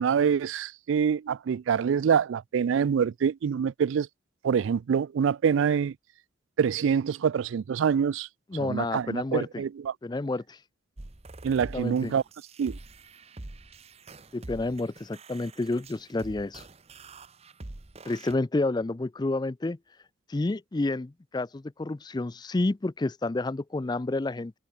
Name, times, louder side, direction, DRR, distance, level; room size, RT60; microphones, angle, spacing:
voice 1, 0.0-4.1 4.4-5.9 6.6-8.3 8.6-9.9 11.4-12.2 12.6-12.8, right 7 dB, 70° right, 0.3 m, -25 dB
voice 2, 8.5-9.6 10.0-10.6 11.7-12.1 14.3-16.7 18.1-19.8 20.3-24.5, left 2 dB, 20° left, 0.4 m, -29 dB
sound 1, 11.0-18.3, right 2 dB, 30° right, 0.9 m, -46 dB
head